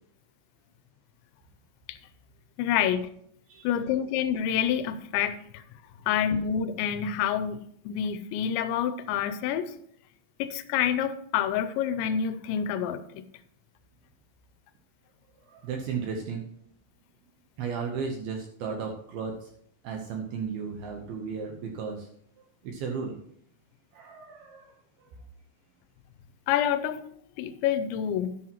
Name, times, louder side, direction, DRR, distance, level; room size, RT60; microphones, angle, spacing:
voice 1, 2.6-3.1 3.6-5.6 6.1-9.8 10.4-13.2 26.5-27.0 27.4-28.3, left 9 dB, 85° left, 11 dB, 2.7 m, -28 dB
voice 2, 15.4-16.4 17.6-19.5 19.8-22.1 22.4-23.2 23.9-25.2, right 5 dB, 75° right, 2 dB, 2.3 m, -35 dB
11.5 x 11.5 x 3.0 m, 0.68 s
omnidirectional pair, 5.5 m